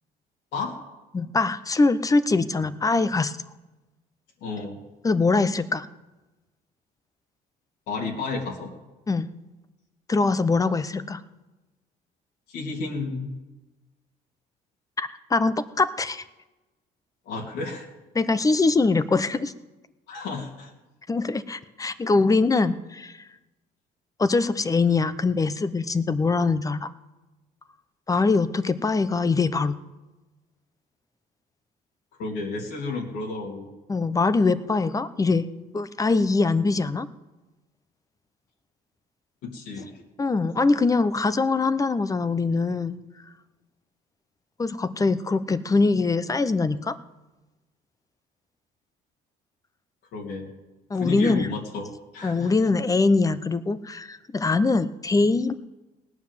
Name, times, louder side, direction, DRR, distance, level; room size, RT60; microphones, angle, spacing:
voice 1, 1.1-3.4 5.0-5.8 9.1-9.3 10.1-11.2 15.0-16.2 18.1-19.5 21.1-23.1 24.2-26.9 28.1-29.8 33.9-35.5 35.7-37.1 40.2-43.0 44.6-47.0 50.9-51.5 52.2-55.5, left 3 dB, 20° left, 13 dB, 0.8 m, -23 dB
voice 2, 4.4-4.8 7.9-8.7 12.5-13.3 17.2-17.9 20.1-20.7 32.2-33.7 39.4-39.9 50.1-50.5 50.9-51.9 52.1-52.5, left 3 dB, 90° left, -2 dB, 3.0 m, -32 dB
18.0 x 9.6 x 7.5 m, 1.1 s
cardioid pair, 110°, 17 cm